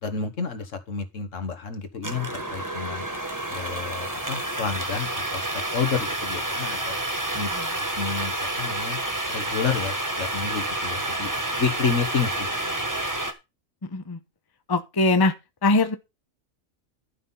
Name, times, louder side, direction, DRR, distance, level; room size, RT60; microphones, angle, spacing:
voice 1, 0.0-3.0 3.5-5.5 5.7-7.0 7.3-7.5 7.8-9.0 9.3-12.7, left 5 dB, 70° left, 1.8 m, -30 dB
sound 1, 2.0-13.3, right 1 dB, 15° right, 1.4 m, -29 dB
voice 2, 14.7-15.3 15.6-15.9, left 2 dB, 20° left, 0.8 m, -21 dB
12.0 x 5.8 x 5.6 m
omnidirectional pair, 1.4 m